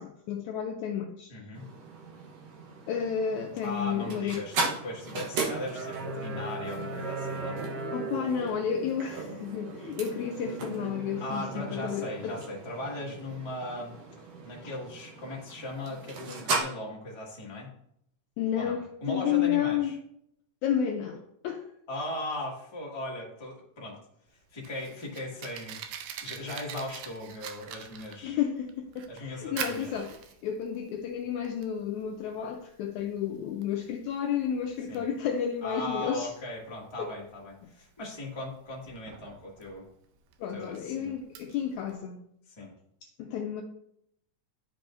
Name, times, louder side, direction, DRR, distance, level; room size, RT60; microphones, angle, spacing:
voice 1, 0.0-1.3 2.9-4.5 7.9-12.4 14.6-14.7 18.4-20.0 20.6-21.7 28.2-36.3 37.0-37.1 40.4-42.2 43.0-43.6, left 8 dB, 85° left, 1.7 m, -31 dB
voice 2, 1.3-1.6 3.6-4.6 4.8-7.6 11.2-13.9 14.4-17.7 18.5-20.0 21.9-24.0 24.5-25.8 26.2-28.4 29.1-29.9 34.9-35.0 35.6-39.9 40.5-41.1 42.5-42.7, left 1 dB, 15° left, 0.9 m, -38 dB
sound 1, 1.5-16.6, right 3 dB, 60° right, 1.9 m, -36 dB
Fire, 24.3-42.0, right 8 dB, 85° right, 2.2 m, -45 dB
12.0 x 4.8 x 2.6 m
omnidirectional pair, 3.9 m